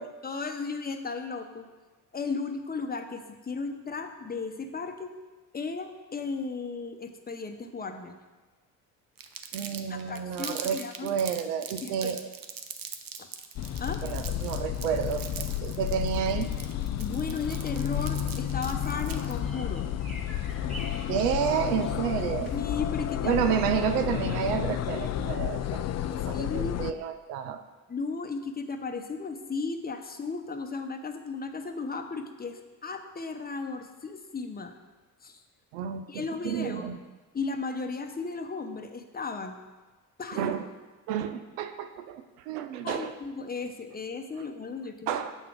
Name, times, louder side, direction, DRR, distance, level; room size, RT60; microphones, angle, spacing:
voice 1, 0.0-1.7 2.1-5.1 5.5-8.1 9.9-11.1 11.8-12.1 13.2-13.3 13.8-14.1 17.0-19.8 22.5-23.4 26.3-26.8 27.9-34.7 35.2-35.4 36.1-36.8 37.3-39.6 40.2-40.5 42.8-45.2, left 4 dB, 20° left, 6 dB, 0.8 m, -35 dB
Crumpling crinkling, 9.2-19.4, right 8 dB, 50° right, 0.8 m, -41 dB
voice 2, 9.5-12.3 14.0-16.5 21.1-22.5 23.3-25.8 26.3-27.6 35.7-37.0 40.3-40.6 41.1-43.1 45.1-45.3, right 8 dB, 85° right, 9 dB, 0.6 m, -30 dB
sound 1, 13.6-26.9, left 11 dB, 40° left, 0.4 m, -31 dB
sound 2, 17.2-22.6, equal, ahead, 2.2 m, -48 dB
7.1 x 3.7 x 6.0 m, 1.3 s
hypercardioid pair, 55°, 46 cm